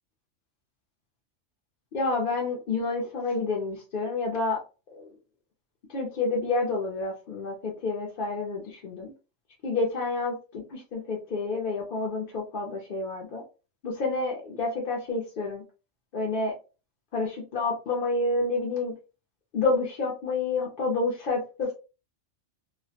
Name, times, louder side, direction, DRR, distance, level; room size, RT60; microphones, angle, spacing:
voice 1, 1.9-4.6 4.9-5.1 5.9-9.1 9.6-13.4 13.8-15.6 16.1-16.5 17.1-18.9 19.5-21.7, left 3 dB, 55° left, -2 dB, 0.6 m, -29 dB
2.4 x 2.0 x 2.7 m, 0.32 s
omnidirectional pair, 1.3 m